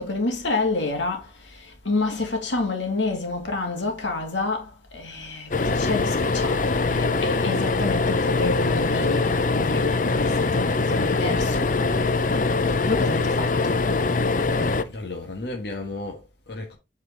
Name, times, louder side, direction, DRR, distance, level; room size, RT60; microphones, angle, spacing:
voice 1, 0.0-11.7 12.9-13.9, left 3 dB, 90° left, 2.5 m, -29 dB
sound 1, 5.5-14.8, left 3 dB, 45° left, 0.6 m, -23 dB
voice 2, 14.8-16.8, left 2 dB, 65° left, 1.5 m, -34 dB
8.3 x 4.7 x 3.9 m
head